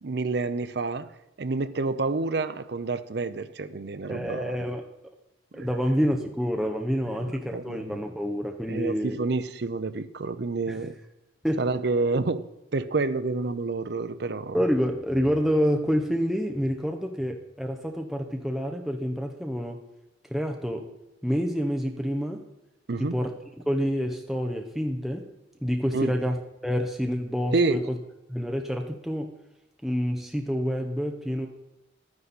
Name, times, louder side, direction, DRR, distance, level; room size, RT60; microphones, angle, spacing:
voice 1, 0.0-1.1 1.4-4.6 5.5-5.7 7.1-8.0 8.7-10.9 11.6-14.6 22.9-23.2 25.9-26.2 27.5-27.9, right 3 dB, 55° right, 0.6 m, -28 dB
voice 2, 4.1-4.8 5.5-9.2 10.7-10.9 11.4-11.6 14.5-19.8 20.3-20.9 21.2-22.4 23.0-23.3 23.7-25.3 25.6-26.4 26.6-27.8 28.3-29.3 29.8-31.5, equal, ahead, 0.7 m, -27 dB
11.5 x 9.7 x 4.1 m
head